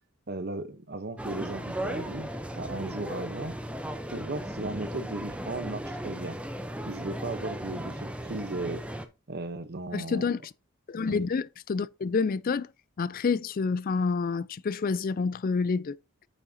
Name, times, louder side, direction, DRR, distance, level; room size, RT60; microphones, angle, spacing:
voice 1, 0.3-2.3 2.5-3.6 4.1-6.4 6.9-8.8 9.3-10.3 11.1-11.2, right 2 dB, 45° right, 0.9 m, -36 dB
sound 1, 1.2-9.1, equal, 5° right, 0.7 m, -36 dB
voice 2, 9.9-10.5 10.9-12.7 13.0-16.0, left 4 dB, 40° left, 0.3 m, -28 dB
8.9 x 7.2 x 2.7 m
head